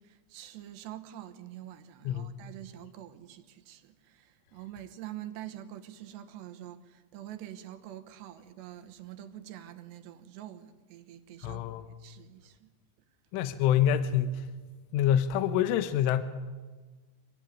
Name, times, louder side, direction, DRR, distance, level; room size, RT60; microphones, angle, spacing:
voice 1, 0.0-11.6 11.9-12.7, right 12 dB, 70° right, 3.1 m, -46 dB
voice 2, 11.4-11.8 13.3-14.4 14.9-16.2, left 10 dB, 85° left, 3.5 m, -26 dB
25.0 x 18.5 x 9.6 m
omnidirectional pair, 5.6 m